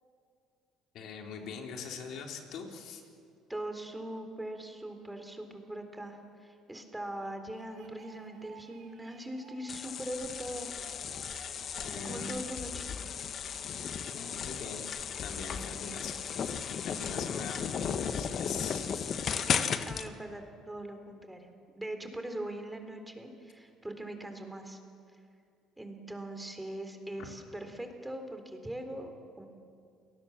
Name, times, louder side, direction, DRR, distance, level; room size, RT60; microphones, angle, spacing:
voice 1, 0.9-3.0 11.8-12.4 13.7-14.9 15.2-16.5 16.8-19.1 27.2-27.3, left 5 dB, 65° left, 2 dB, 3.8 m, -42 dB
voice 2, 3.5-10.7 12.0-12.9 19.4-21.5 21.8-24.8 25.8-29.5, right 1 dB, 10° right, 6 dB, 3.7 m, -41 dB
sound 1, 7.2-10.1 10.6-12.4, right 5 dB, 65° right, 3.6 m, -56 dB
sound 2, 9.7-20.1, left 7 dB, 50° left, 1.3 m, -35 dB
28.5 x 19.0 x 7.4 m, 2.4 s
supercardioid pair, 85°, 0 cm